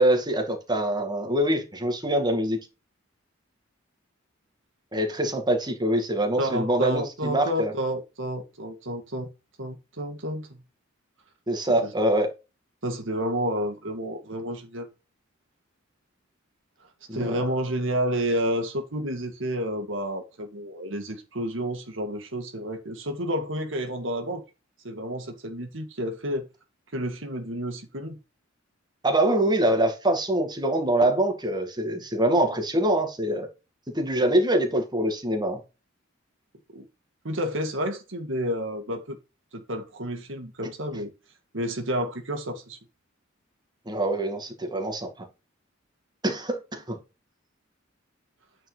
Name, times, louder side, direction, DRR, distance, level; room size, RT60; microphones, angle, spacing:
voice 1, 0.0-2.6 4.9-7.7 11.5-12.3 17.1-17.4 29.0-33.5 33.9-35.6 43.9-45.3 46.2-47.0, right 1 dB, 20° right, 2.1 m, -24 dB
voice 2, 6.4-9.3 9.6-10.6 11.8-11.9 12.8-14.9 17.1-24.4 24.8-26.5 26.9-28.2 36.7-36.8 37.2-39.2 39.5-41.1 41.5-42.8, equal, 70° right, 1.9 m, -30 dB
9.4 x 4.8 x 4.0 m
head